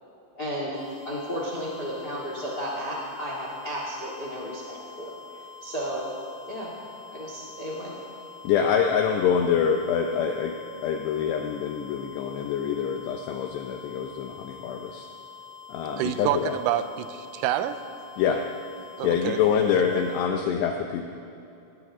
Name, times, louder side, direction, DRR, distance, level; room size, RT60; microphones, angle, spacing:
voice 1, 0.3-0.8 1.0-6.1 6.5-6.7 7.1-8.0, equal, 40° left, -4 dB, 1.5 m, -33 dB
sound 1, 0.7-20.2, left 6 dB, 10° left, 4.5 m, -46 dB
voice 2, 8.4-10.5 10.8-15.1 15.7-16.6 18.2-18.4 19.0-21.1, left 7 dB, 90° left, 3 dB, 2.4 m, -25 dB
voice 3, 16.0-17.8 19.0-19.4, right 11 dB, 85° right, 10 dB, 3.3 m, -27 dB
19.5 x 19.5 x 3.7 m, 2.8 s
omnidirectional pair, 5.9 m